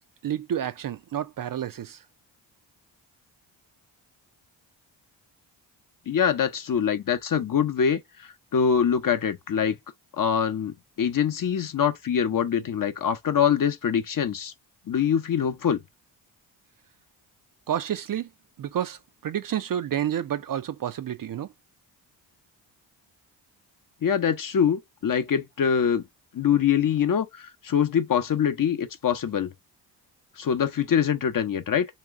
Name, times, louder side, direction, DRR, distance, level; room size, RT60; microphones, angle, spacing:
voice 1, 0.2-2.0 17.7-18.3 18.6-21.5, right 10 dB, 45° right, 0.5 m, -30 dB
voice 2, 6.1-9.8 10.2-14.5 14.9-15.8 24.0-26.0 26.3-29.5 30.4-31.9, left 8 dB, 45° left, 0.7 m, -24 dB
3.0 x 2.9 x 3.5 m
supercardioid pair, 50°, 47 cm